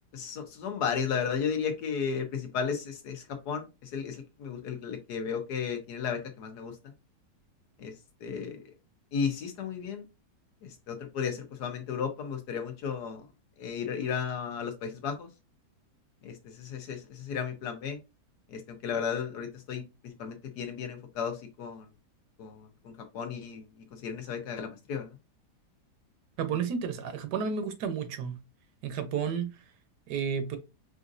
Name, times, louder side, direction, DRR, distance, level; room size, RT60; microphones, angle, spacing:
voice 1, 0.1-6.7 7.8-7.9 8.2-8.6 9.1-10.0 10.6-13.3 13.6-15.3 16.2-18.0 18.5-21.9 22.4-25.1, left 6 dB, 70° left, 1.4 m, -34 dB
voice 2, 26.4-28.4 28.8-29.6 30.1-30.6, right 6 dB, 80° right, 1.3 m, -32 dB
5.0 x 2.5 x 2.5 m
omnidirectional pair, 1.8 m